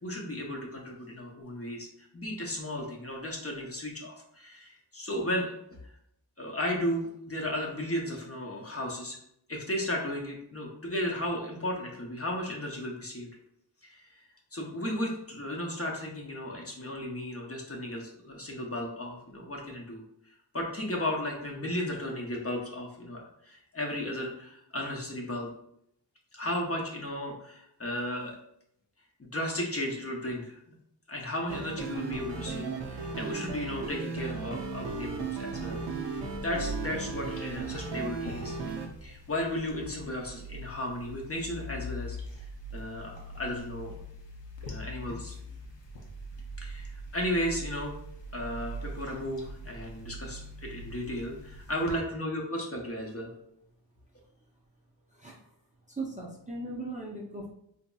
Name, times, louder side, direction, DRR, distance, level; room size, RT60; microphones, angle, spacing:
voice 1, 0.0-1.9 2.1-5.6 6.4-9.2 9.5-13.3 13.8-14.2 14.5-20.0 20.5-25.5 26.3-28.4 29.2-30.6 31.1-35.8 36.4-38.6 39.0-42.2 42.7-44.0 44.6-45.4 46.6-47.9 48.3-53.3, left 1 dB, 35° left, 0 dB, 0.7 m, -34 dB
sound 1, 31.5-38.9, right 4 dB, 70° right, 0.6 m, -36 dB
sound 2, 34.6-51.9, equal, 75° left, 0.8 m, -43 dB
voice 2, 56.0-57.5, right 2 dB, 15° right, -3 dB, 0.5 m, -37 dB
3.9 x 2.8 x 2.3 m, 0.74 s
wide cardioid pair, 80°, 44 cm